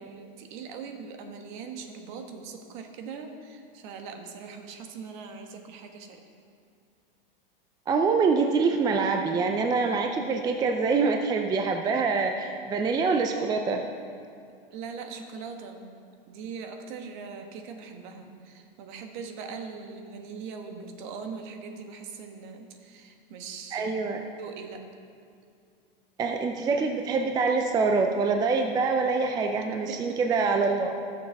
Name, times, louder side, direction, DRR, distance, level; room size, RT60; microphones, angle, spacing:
voice 1, 0.0-6.2 14.7-15.9 16.3-24.0 24.4-24.8 29.6-30.2, right 5 dB, 55° right, 5 dB, 1.4 m, -41 dB
voice 2, 7.9-13.8 23.7-24.3 26.2-31.0, right 4 dB, 15° right, 4 dB, 0.4 m, -25 dB
14.5 x 6.6 x 4.6 m, 2.3 s
hypercardioid pair, 130°, 29 cm